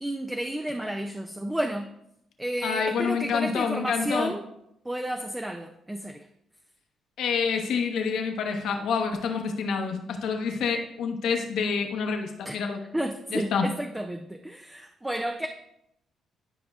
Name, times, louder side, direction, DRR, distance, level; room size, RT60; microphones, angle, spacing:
voice 1, 0.0-1.9 2.4-4.4 4.9-6.2 12.5-12.6 12.9-15.5, right 1 dB, 10° right, 4 dB, 0.5 m, -31 dB
voice 2, 2.6-4.3 7.2-12.8 13.3-13.7, left 5 dB, 75° left, 3 dB, 1.1 m, -27 dB
11.0 x 5.2 x 2.4 m, 0.78 s
cardioid pair, 90°, 0 cm